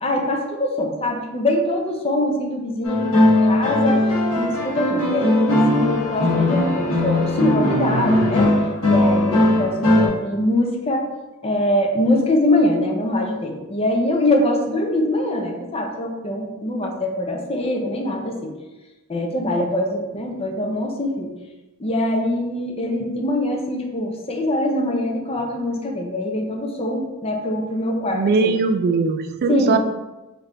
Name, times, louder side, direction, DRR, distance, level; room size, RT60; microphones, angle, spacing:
voice 1, 0.0-4.0 4.4-8.5 8.9-11.0 11.4-18.5 19.1-21.3 21.8-28.5 29.5-29.8, left 1 dB, 25° left, 1 dB, 0.6 m, -23 dB
sound 1, 2.8-10.1, left 1 dB, 80° left, 1.2 m, -19 dB
voice 2, 28.1-29.8, right 4 dB, 45° right, 9 dB, 0.3 m, -20 dB
3.5 x 3.2 x 3.8 m, 1.1 s
head